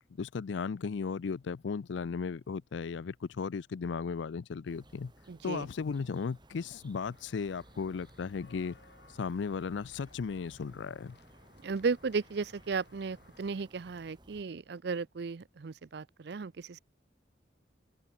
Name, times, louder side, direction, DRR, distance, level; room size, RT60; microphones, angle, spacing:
voice 1, 0.2-5.1 5.4-8.8 9.2-11.2, left 5 dB, 75° left, 0.4 m, -36 dB
sound 1, 4.6-14.4, right 1 dB, 25° right, 5.2 m, -59 dB
voice 2, 5.3-5.7 11.6-16.8, right 4 dB, 60° right, 0.5 m, -35 dB
Walk footsteps / Bell, 7.0-13.7, left 3 dB, 60° left, 7.7 m, -61 dB
open air
head